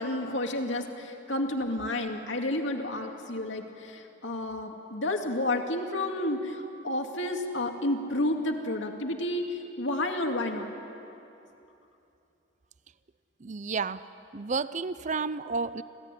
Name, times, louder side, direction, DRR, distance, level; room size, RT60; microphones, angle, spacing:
voice 1, 0.0-10.7, left 1 dB, 80° left, 3 dB, 2.3 m, -31 dB
voice 2, 13.4-15.8, right 4 dB, 40° right, 15 dB, 0.6 m, -32 dB
26.5 x 17.5 x 9.9 m, 2.8 s
head